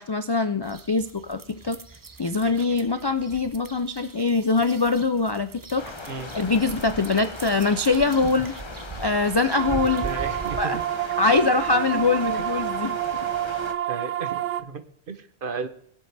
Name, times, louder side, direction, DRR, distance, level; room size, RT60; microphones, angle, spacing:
voice 1, 0.0-1.8 2.2-8.6 9.0-10.1 10.6-10.8 11.2-13.3, left 3 dB, 40° left, 10 dB, 0.3 m, -23 dB
sound 1, 0.6-10.8, right 4 dB, 30° right, 0.4 m, -41 dB
sound 2, 5.8-13.7, left 3 dB, 25° left, 0.8 m, -39 dB
sound 3, 9.5-14.6, right 12 dB, 90° right, 1.0 m, -28 dB
voice 2, 10.0-10.8 13.9-15.7, right 5 dB, 50° right, 10 dB, 1.0 m, -34 dB
21.0 x 7.7 x 3.4 m, 0.66 s
omnidirectional pair, 1.2 m